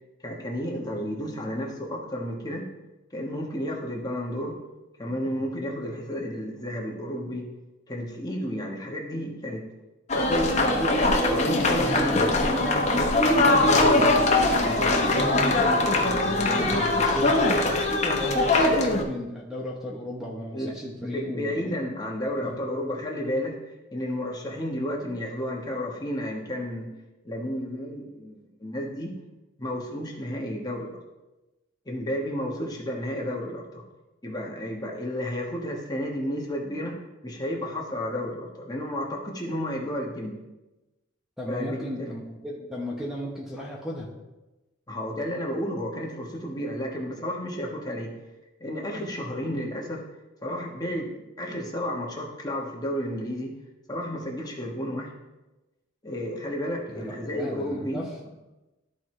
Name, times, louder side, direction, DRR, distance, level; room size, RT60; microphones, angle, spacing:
voice 1, 0.2-2.7 3.1-4.6 5.0-7.5 7.9-9.6 10.1-12.3 16.5-16.8 20.5-20.7 21.0-23.6 23.9-26.9 27.2-29.1 29.6-30.9 31.8-33.8 34.2-40.4 41.5-42.1 44.9-48.1 48.6-50.1 50.4-53.5 53.9-55.1 56.0-58.0, equal, 20° left, -2 dB, 1.3 m, -32 dB
sound 1, 10.1-19.0, left 2 dB, 35° left, 1.0 m, -22 dB
voice 2, 11.4-21.7 22.4-22.6 41.4-44.1 56.9-58.3, equal, ahead, -3 dB, 1.0 m, -34 dB
13.5 x 4.6 x 3.2 m, 1.1 s
head